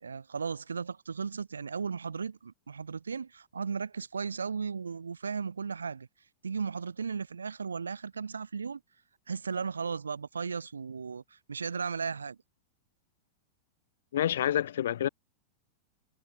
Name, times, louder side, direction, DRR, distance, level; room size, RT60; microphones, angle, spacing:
voice 1, 0.0-6.1 6.4-8.8 9.3-12.4, right 5 dB, 75° right, 1.3 m, -36 dB
voice 2, 14.1-15.1, left 11 dB, 60° left, 0.5 m, -28 dB
figure-of-eight pair, 90°, 0 cm